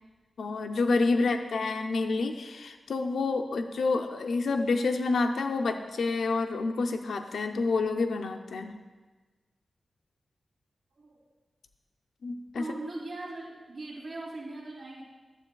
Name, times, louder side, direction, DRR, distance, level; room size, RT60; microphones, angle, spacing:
voice 1, 0.4-8.7 12.2-12.8, left 3 dB, 85° left, 6 dB, 0.5 m, -28 dB
voice 2, 12.5-15.0, right 2 dB, 70° right, -4 dB, 2.5 m, -40 dB
11.5 x 7.7 x 2.3 m, 1.3 s
wide cardioid pair, 75°, 0 cm